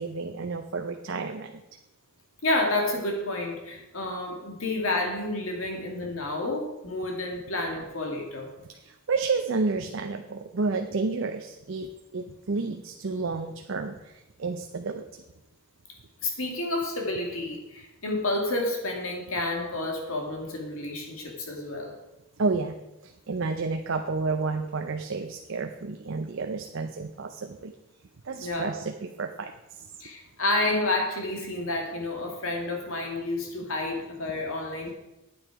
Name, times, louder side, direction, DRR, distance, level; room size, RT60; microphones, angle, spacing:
voice 1, 0.0-1.5 8.8-14.0 14.4-15.0 22.4-22.7 23.0-27.7 28.3-29.5, right 4 dB, 60° right, 5 dB, 0.6 m, -30 dB
voice 2, 2.4-8.5 16.2-21.9 28.3-28.7 30.0-34.9, left 2 dB, 75° left, 1 dB, 2.2 m, -30 dB
8.9 x 8.9 x 4.7 m, 0.96 s
head